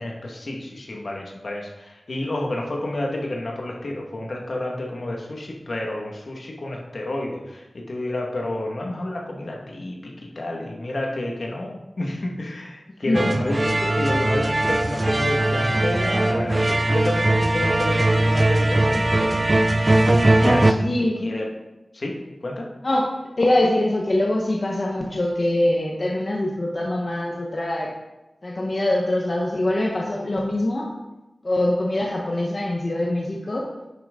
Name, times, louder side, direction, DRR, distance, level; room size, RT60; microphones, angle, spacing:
voice 1, 0.0-19.3 20.4-20.9 21.2-21.5 21.9-22.7, left 1 dB, 70° left, -1 dB, 1.7 m, -29 dB
sound 1, 13.1-20.7, right 2 dB, 40° right, 0.6 m, -20 dB
voice 2, 20.8-21.3 22.8-23.1 23.4-27.9 28.4-30.9 31.4-33.6, left 1 dB, 50° left, -2 dB, 1.2 m, -23 dB
10.5 x 6.2 x 3.8 m, 1.0 s
wide cardioid pair, 60°, 0 cm